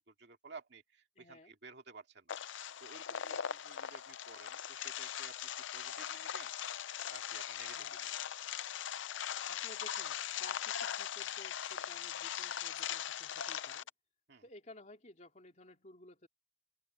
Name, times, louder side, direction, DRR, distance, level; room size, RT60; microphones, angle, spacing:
voice 1, 0.1-2.4 2.8-5.3 5.7-6.5 7.1-8.2 14.3-14.4, right 4 dB, 55° right, 2.4 m, -54 dB
voice 2, 1.2-1.5 7.7-8.0 9.5-13.9 14.4-16.3, left 2 dB, 35° left, 3.0 m, -56 dB
sound 1, 2.3-13.9, left 9 dB, 65° left, 0.6 m, -40 dB
open air
head